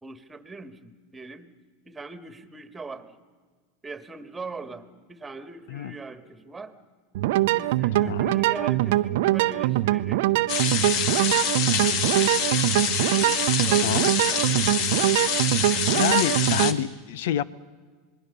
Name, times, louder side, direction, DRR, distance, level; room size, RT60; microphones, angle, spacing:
voice 1, 0.0-1.5 1.8-3.2 3.8-6.7 7.5-10.2 13.1-14.6, right 3 dB, 10° right, 1.8 m, -40 dB
sound 1, 7.1-16.7, right 15 dB, 70° right, 0.7 m, -23 dB
voice 2, 7.9-8.4 13.8-14.1 15.9-17.4, left 10 dB, 75° left, 0.9 m, -28 dB
sound 2, 10.5-16.7, left 7 dB, 55° left, 1.7 m, -26 dB
26.5 x 21.0 x 6.9 m
hypercardioid pair, 110°, 0 cm